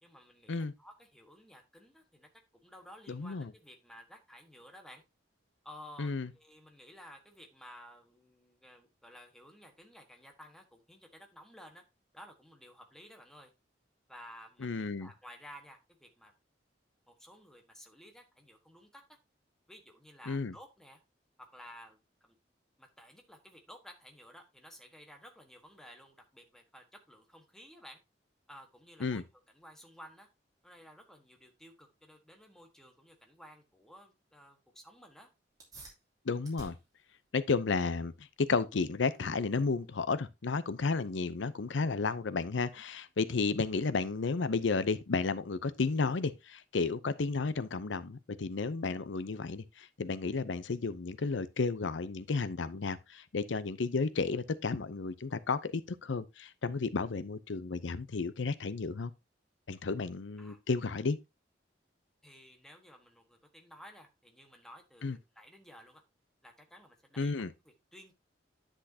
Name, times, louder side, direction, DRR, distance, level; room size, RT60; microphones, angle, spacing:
voice 1, 0.0-2.3 2.6-5.0 5.6-11.8 12.1-13.5 14.1-16.3 17.1-19.2 19.7-21.0 21.5-22.4 22.8-28.0 28.5-29.2 29.5-30.3 30.6-35.3 60.4-60.6 62.2-66.0 66.4-68.1, equal, 5° left, 1.4 m, -54 dB
voice 2, 3.1-3.5 6.0-6.3 14.6-15.1 20.3-20.5 29.0-29.2 36.3-36.8 37.3-59.1 59.7-61.2 65.0-65.2 67.2-67.5, left 4 dB, 85° left, 0.6 m, -32 dB
sound 1, 35.5-45.5, right 2 dB, 20° right, 2.7 m, -59 dB
10.0 x 6.3 x 2.8 m
head